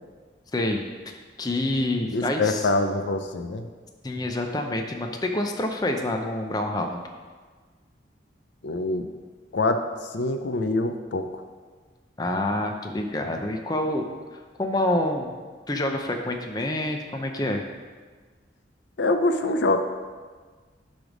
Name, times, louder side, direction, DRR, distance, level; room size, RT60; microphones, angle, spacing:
voice 1, 0.5-2.7 4.0-7.1 12.2-14.1 14.3-15.3 15.7-17.6, left 1 dB, 20° left, 3 dB, 0.6 m, -27 dB
voice 2, 2.1-3.7 8.6-9.1 9.5-11.4 19.0-19.8, left 2 dB, 70° left, 7 dB, 0.5 m, -25 dB
10.0 x 3.4 x 6.1 m, 1.5 s
head